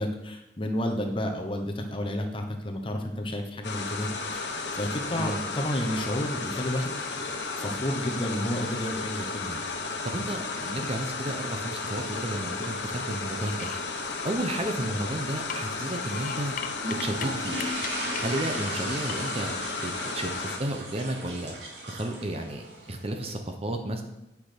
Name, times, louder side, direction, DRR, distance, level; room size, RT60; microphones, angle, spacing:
voice 1, 0.0-6.9 7.2-9.6, left 1 dB, 30° left, 3 dB, 1.0 m, -31 dB
sound 1, 3.6-20.6, left 3 dB, 75° left, 1.2 m, -34 dB
voice 2, 10.0-13.7 14.2-16.5 16.9-17.6 18.2-21.5 21.9-24.0, right 1 dB, 35° right, 5 dB, 0.9 m, -32 dB
sound 2, 10.2-10.9 11.3-12.8 13.3-15.0 15.4-17.3 17.6-18.2 18.7-18.8 19.1-19.7, left 7 dB, 50° left, 0.7 m, -40 dB
sound 3, 16.8-23.3, right 1 dB, 80° right, 2.4 m, -37 dB
8.7 x 5.9 x 5.1 m, 0.92 s
head